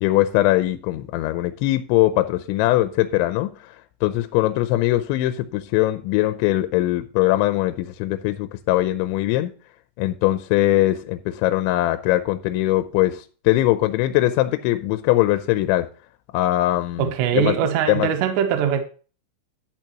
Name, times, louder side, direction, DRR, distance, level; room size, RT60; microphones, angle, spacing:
voice 1, 0.0-3.7 4.0-9.5 10.0-15.9 16.3-17.5 17.9-18.1, left 16 dB, 80° left, 2.8 m, -21 dB
voice 2, 17.0-18.8, right 8 dB, 75° right, 3.2 m, -21 dB
11.0 x 9.2 x 2.9 m
omnidirectional pair, 5.5 m